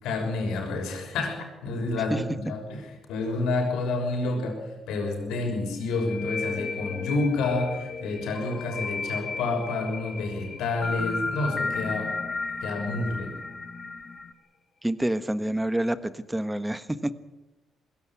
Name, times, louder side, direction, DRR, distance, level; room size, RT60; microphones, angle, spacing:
voice 1, 0.0-12.2 12.6-13.4, left 2 dB, 90° left, 2 dB, 6.3 m, -29 dB
sound 1, 5.8-13.2, left 4 dB, 55° left, 3.9 m, -37 dB
sound 2, 8.3-9.6 10.8-14.3, left 3 dB, 30° left, 1.7 m, -33 dB
voice 2, 14.8-17.1, right 1 dB, 10° right, 12 dB, 1.3 m, -28 dB
21.5 x 16.5 x 9.8 m, 1.1 s
cardioid pair, 90°, 0 cm